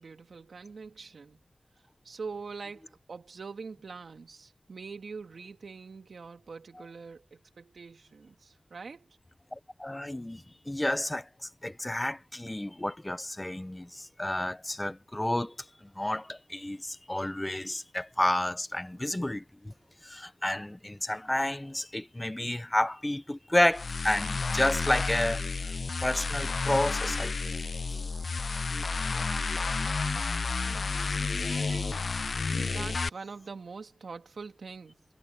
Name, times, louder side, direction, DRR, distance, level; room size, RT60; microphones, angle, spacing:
voice 1, 0.0-1.4 2.0-9.2 30.6-32.1 32.5-35.0, right 4 dB, 75° right, 2.7 m, -44 dB
voice 2, 9.5-11.3 11.6-15.5 16.0-19.7 20.0-25.4 26.0-27.3, left 1 dB, 15° left, 0.7 m, -30 dB
sound 1, 23.7-33.1, left 4 dB, 60° left, 0.3 m, -31 dB
wide cardioid pair, 105°, 0 cm